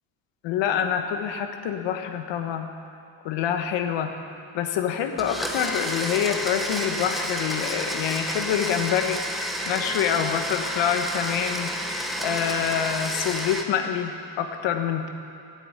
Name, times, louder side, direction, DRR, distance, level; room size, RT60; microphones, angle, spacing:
voice 1, 0.4-2.7 3.2-4.1 4.5-9.4 9.7-11.7 12.2-15.1, left 8 dB, 65° left, 6 dB, 1.4 m, -26 dB
Domestic sounds home sounds, 5.2-13.6, equal, ahead, 0.7 m, -30 dB
14.0 x 8.1 x 9.1 m, 2.7 s
cardioid pair, 170°, 47 cm